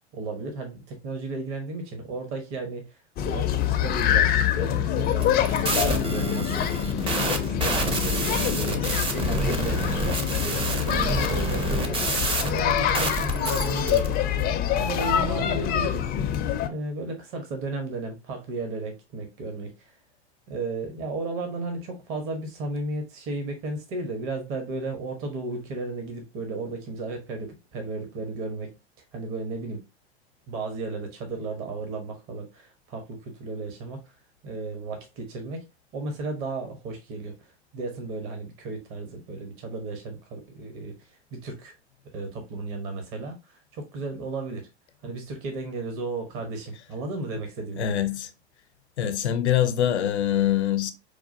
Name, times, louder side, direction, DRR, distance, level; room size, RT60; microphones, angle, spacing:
voice 1, 0.1-8.9 9.2-9.9 10.3-16.1 16.7-20.0 20.5-28.8 29.1-29.9 30.5-35.7 35.9-41.8 42.1-44.7 45.0-47.9, right 3 dB, 40° right, 1.0 m, -34 dB
sound 1, 3.2-16.7, left 9 dB, 30° left, 0.4 m, -25 dB
sound 2, 5.1-14.1, right 2 dB, 15° right, 0.6 m, -28 dB
voice 2, 47.8-48.3 49.0-50.9, left 10 dB, 80° left, 0.6 m, -24 dB
4.6 x 2.4 x 2.6 m
hypercardioid pair, 95°, 33 cm